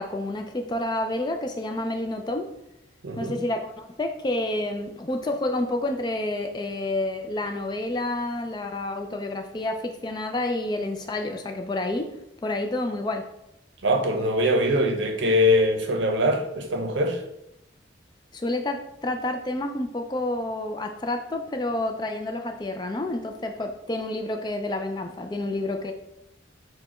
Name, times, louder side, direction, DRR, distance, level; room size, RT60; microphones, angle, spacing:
voice 1, 0.0-2.5 3.2-12.1 12.4-13.3 18.3-25.9, left 2 dB, 20° left, 0.3 m, -29 dB
voice 2, 3.0-3.4 13.8-17.2, left 1 dB, 75° right, 0.7 m, -22 dB
4.7 x 2.2 x 4.2 m
head